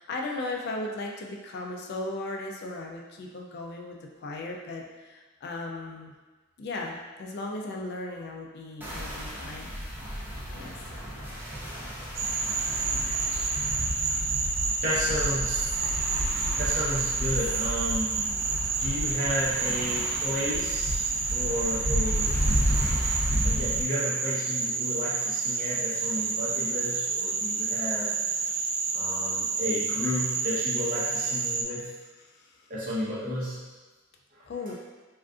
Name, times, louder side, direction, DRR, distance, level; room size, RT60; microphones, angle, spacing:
voice 1, 0.0-6.1 6.6-9.7 10.5-10.8 18.2-18.3 32.2-32.7 34.5-34.7, left 2 dB, 55° left, 0 dB, 0.3 m, -37 dB
sound 1, 8.8-23.8, equal, 10° right, 0.5 m, -32 dB
Frog, 12.2-31.6, right 4 dB, 65° right, 0.3 m, -29 dB
voice 2, 13.3-13.8 14.8-15.6 16.6-18.1 18.8-21.0 21.3-22.3 23.4-28.1 28.9-31.9 32.7-33.6, left 1 dB, 40° right, -8 dB, 0.9 m, -32 dB
3.5 x 2.4 x 2.4 m, 1.3 s
head